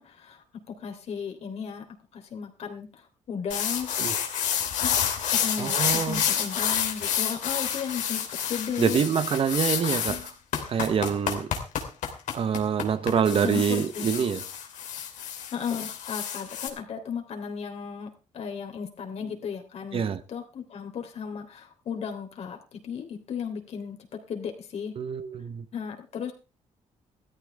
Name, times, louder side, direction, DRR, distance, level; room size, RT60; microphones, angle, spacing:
voice 1, 0.0-1.9 2.1-3.9 5.3-9.0 13.4-14.0 15.5-25.0 25.7-26.3, left 7 dB, 55° left, 3.4 m, -35 dB
sound 1, 3.5-16.7, left 9 dB, 75° left, 3.0 m, -29 dB
voice 2, 5.6-6.2 8.8-10.3 10.7-11.5 12.3-14.4 19.9-20.2 25.0-25.6, right 7 dB, 45° right, 1.0 m, -26 dB
16.5 x 14.0 x 3.5 m
cardioid pair, 120°, 13 cm